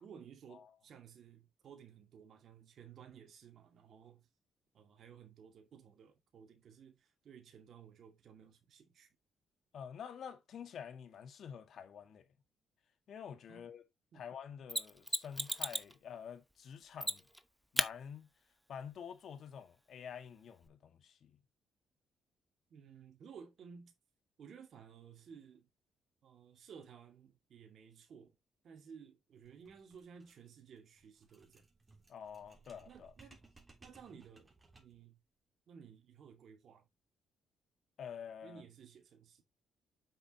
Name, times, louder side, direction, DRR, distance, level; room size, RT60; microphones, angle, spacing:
voice 1, 0.0-4.3 4.7-9.1 13.5-13.7 14.1-14.3 22.7-23.9 24.4-25.7 26.2-28.4 28.6-31.7 32.9-33.4 33.8-34.5 34.8-35.2 35.7-36.9 38.4-39.4, right 7 dB, 60° right, 2.2 m, -56 dB
voice 2, 9.7-12.2 13.1-13.8 14.1-17.2 17.7-18.3 18.7-21.3 32.1-33.1 38.0-38.6, left 7 dB, 65° left, 1.8 m, -48 dB
Mechanisms, 14.7-15.9 17.0-17.4 17.8-17.9 20.7-20.8, equal, ahead, 0.8 m, -35 dB
sound 1, 29.4-35.1, right 3 dB, 20° right, 3.5 m, -63 dB
7.9 x 6.3 x 2.9 m
cardioid pair, 90°, 0 cm